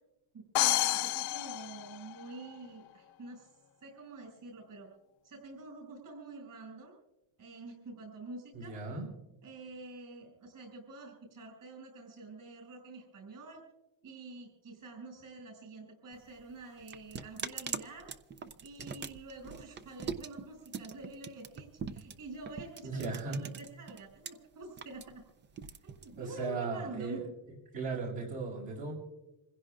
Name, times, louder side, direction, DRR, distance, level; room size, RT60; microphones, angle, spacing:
voice 1, 0.3-3.5 3.8-4.9 5.2-7.0 7.4-8.8 9.4-13.6 14.0-18.1 18.6-25.2 25.8-27.2, right 2 dB, 40° right, 0 dB, 6.8 m, -47 dB
sound 1, 0.5-2.5, left 16 dB, 80° left, 0.8 m, -30 dB
voice 2, 8.5-9.1 22.8-23.4 26.2-27.2 27.7-28.9, right 4 dB, 60° right, -2 dB, 6.7 m, -37 dB
sound 2, 16.1-24.3 24.6-26.5, right 6 dB, 25° right, 0.4 m, -42 dB
28.0 x 16.0 x 2.5 m, 0.96 s
cardioid pair, 145°, 48 cm